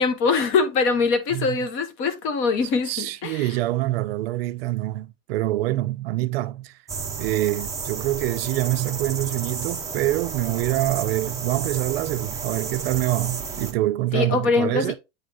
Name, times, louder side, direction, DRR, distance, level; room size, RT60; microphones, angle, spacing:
voice 1, 0.0-3.6 14.1-14.9, left 4 dB, 35° left, 1.1 m, -23 dB
voice 2, 2.9-6.8 7.2-15.0, right 16 dB, 50° right, 0.5 m, -25 dB
sound 1, 6.9-13.7, right 5 dB, 10° right, 0.9 m, -32 dB
8.4 x 3.3 x 3.9 m
supercardioid pair, 155°, 38 cm